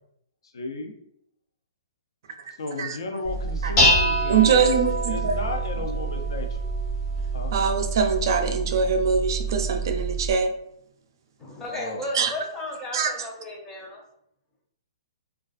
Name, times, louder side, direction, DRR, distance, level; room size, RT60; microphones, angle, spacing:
voice 1, 0.5-0.9 2.6-6.7 7.3-7.5 11.7-12.2, left 3 dB, 80° left, 4 dB, 0.4 m, -34 dB
Dishes pots and pans, 3.2-10.3, right 1 dB, 35° left, 0.9 m, -26 dB
voice 2, 4.3-5.4 7.5-10.5 12.1-12.3 12.9-13.1, right 6 dB, 55° right, 5 dB, 0.3 m, -23 dB
voice 3, 11.4-14.0, left 1 dB, 10° left, -2 dB, 0.5 m, -34 dB
2.3 x 2.2 x 2.3 m, 0.73 s
hypercardioid pair, 150°, 2 cm